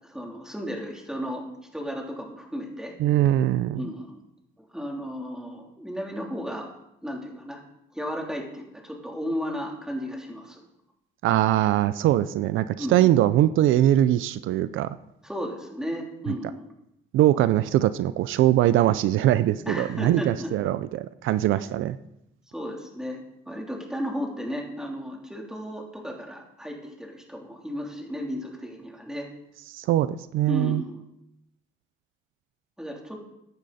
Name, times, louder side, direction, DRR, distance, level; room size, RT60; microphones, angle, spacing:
voice 1, 0.0-1.4 1.7-2.9 3.7-4.2 4.7-6.7 7.0-7.6 7.9-10.6 12.8-13.0 15.2-16.7 19.6-20.5 22.5-23.2 23.5-29.3 30.5-31.0 32.8-33.3, equal, 5° right, 0 dB, 3.4 m, -34 dB
voice 2, 3.0-3.8 11.2-15.0 16.3-16.4 17.1-22.0 29.7-30.8, right 13 dB, 85° right, 15 dB, 0.5 m, -22 dB
15.5 x 9.9 x 4.2 m, 0.81 s
cardioid pair, 90°, 20 cm